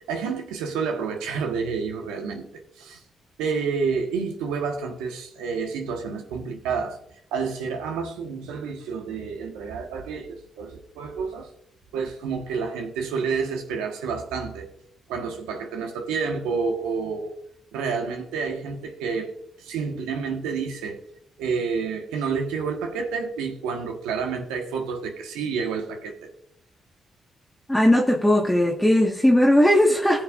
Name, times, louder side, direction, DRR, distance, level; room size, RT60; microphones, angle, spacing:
voice 1, 0.1-3.0 3.4-7.0 7.3-11.5 11.9-14.7 15.1-17.3 17.7-19.3 19.6-21.0 21.4-26.3, right 5 dB, 90° right, 3 dB, 1.4 m, -29 dB
voice 2, 27.7-30.2, left 1 dB, 10° left, -1 dB, 1.5 m, -18 dB
18.0 x 6.7 x 2.5 m, 0.74 s
supercardioid pair, 50°, 0 cm